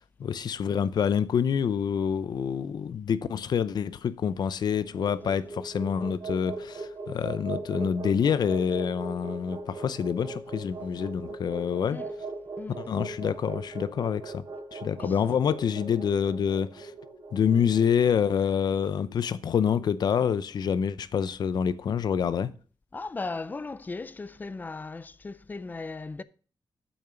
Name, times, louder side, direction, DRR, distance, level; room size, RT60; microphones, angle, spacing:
voice 1, 0.0-12.0 12.8-14.4 14.7-16.9 17.3-22.5, left 7 dB, 65° left, 0.6 m, -27 dB
sound 1, 4.6-18.9, right 3 dB, 50° right, 3.1 m, -39 dB
voice 2, 12.6-12.9 15.0-15.1 22.9-26.2, left 3 dB, 25° left, 0.5 m, -37 dB
sound 2, 15.5-16.0 16.7-17.2 17.5-18.0 18.7-19.1 19.6-20.2, right 6 dB, 90° right, 1.6 m, -51 dB
8.8 x 7.2 x 5.1 m
wide cardioid pair, 135°, 8 cm